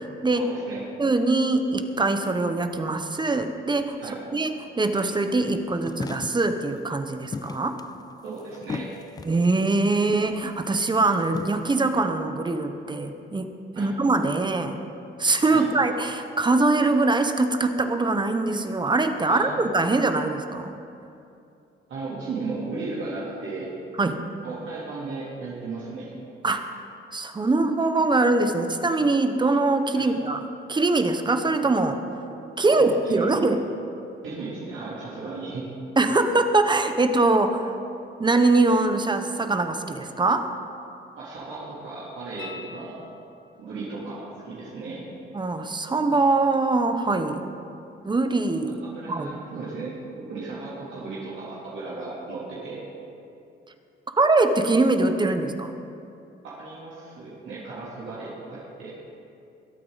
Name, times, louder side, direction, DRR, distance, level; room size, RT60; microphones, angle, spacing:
voice 1, 0.3-0.8 4.0-4.2 8.2-8.9 13.7-13.9 15.5-15.7 19.3-19.6 21.9-23.7 24.4-26.1 29.9-30.1 32.7-33.5 34.2-35.7 41.2-43.0 43.6-45.0 48.9-50.0 50.3-52.8 56.4-59.0, right 3 dB, 75° right, -8 dB, 3.3 m, -35 dB
voice 2, 1.0-4.0 4.3-7.8 9.2-13.5 13.8-14.7 15.2-20.7 24.0-24.2 26.4-26.7 27.1-32.0 32.6-33.6 36.0-37.7 38.2-40.5 45.3-47.5 48.0-48.8 49.1-49.3 54.2-55.7, right 3 dB, 25° right, 7 dB, 1.0 m, -23 dB
sound 1, 5.9-6.6 7.3-9.5 10.1-10.4 10.9-11.7, left 4 dB, 20° left, 0.4 m, -36 dB
sound 2, 42.4-43.7 46.5-46.6, left 5 dB, 70° left, 1.4 m, -44 dB
22.0 x 8.7 x 4.1 m, 2.6 s
cardioid pair, 90°, 20 cm